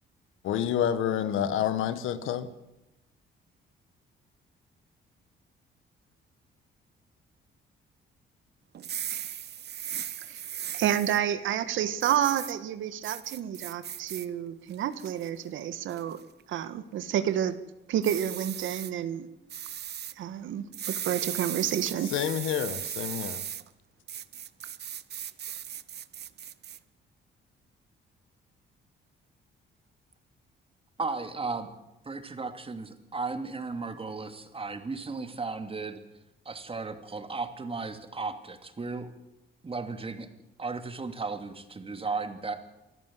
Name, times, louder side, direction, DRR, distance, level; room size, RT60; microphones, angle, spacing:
voice 1, 0.4-2.5 22.1-23.4, left 9 dB, 85° left, 13 dB, 1.5 m, -28 dB
sound 1, 8.7-11.2 12.0-12.5 13.0-14.3 14.7-15.3 15.9-16.2 18.0-18.9 19.5-20.1 20.7-23.6 24.1-26.8, right 10 dB, 55° right, 1.0 m, -37 dB
voice 2, 10.7-16.2 16.5-17.6 17.9-19.3 20.2-22.1, right 10 dB, 80° right, 12 dB, 1.5 m, -29 dB
voice 3, 31.0-31.7 32.0-36.0 36.4-39.1 39.6-40.3 40.6-42.6, right 4 dB, 30° right, 8 dB, 2.7 m, -35 dB
25.5 x 14.0 x 7.7 m, 0.94 s
cardioid pair, 90°, 20 cm